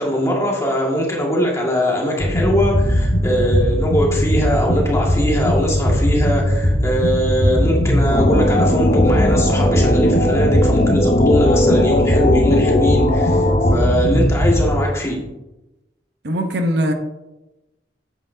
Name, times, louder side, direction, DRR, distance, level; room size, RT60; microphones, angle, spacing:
voice 1, 0.0-13.5 13.7-15.2, equal, 15° left, -3 dB, 2.0 m, -20 dB
sound 1, 2.2-14.8, equal, 60° left, 1.6 m, -19 dB
sound 2, 8.1-13.8, left 1 dB, 40° left, 0.7 m, -19 dB
voice 2, 16.2-16.9, equal, 70° right, 5 dB, 1.0 m, -20 dB
10.0 x 8.6 x 2.8 m, 1.0 s
head